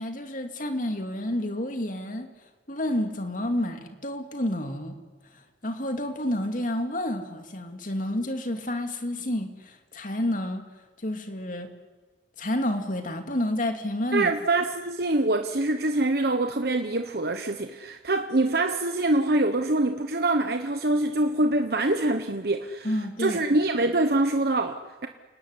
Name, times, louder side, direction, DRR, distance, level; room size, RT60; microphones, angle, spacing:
voice 1, 0.0-2.3 2.7-5.0 5.6-10.6 11.0-11.7 12.4-14.3 22.8-23.4, left 1 dB, 45° left, 6 dB, 2.6 m, -29 dB
voice 2, 14.1-22.9 23.2-25.1, right 2 dB, 60° right, 6 dB, 1.2 m, -25 dB
29.0 x 19.0 x 9.8 m, 1.3 s
head